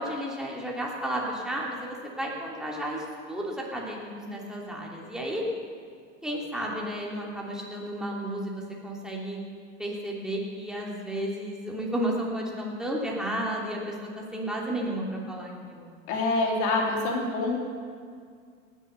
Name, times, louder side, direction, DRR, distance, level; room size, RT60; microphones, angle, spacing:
voice 1, 0.0-5.4 6.2-9.4 9.8-15.9, right 1 dB, ahead, -3 dB, 3.0 m, -33 dB
voice 2, 16.1-17.6, left 2 dB, 55° left, -1 dB, 3.4 m, -26 dB
18.0 x 7.3 x 6.9 m, 2.1 s
hypercardioid pair, 85°, 36 cm